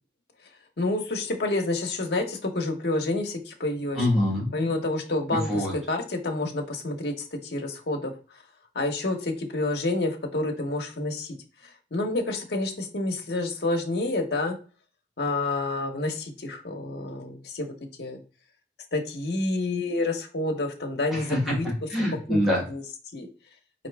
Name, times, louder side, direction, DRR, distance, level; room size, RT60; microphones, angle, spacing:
voice 1, 0.8-4.0 4.5-7.1 7.4-8.1 8.7-11.3 11.9-14.6 15.2-17.7 18.0-18.2 18.9-21.7 22.3-22.4 22.7-22.8 23.1-23.3, left 2 dB, 60° left, 4 dB, 0.8 m, -28 dB
voice 2, 3.9-4.5 5.3-5.7 21.1-22.6, left 1 dB, ahead, -5 dB, 1.3 m, -25 dB
4.3 x 2.7 x 3.3 m, 0.37 s
head